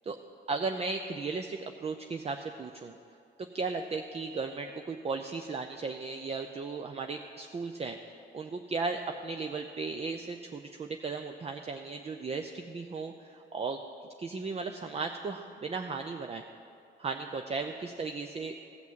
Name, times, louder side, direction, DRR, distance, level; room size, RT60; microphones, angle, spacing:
voice 1, 0.5-2.9 3.5-13.8 14.2-16.4 17.0-18.5, right 4 dB, 30° right, 6 dB, 0.6 m, -36 dB
15.5 x 6.0 x 7.5 m, 2.6 s
cardioid pair, 90°, 20 cm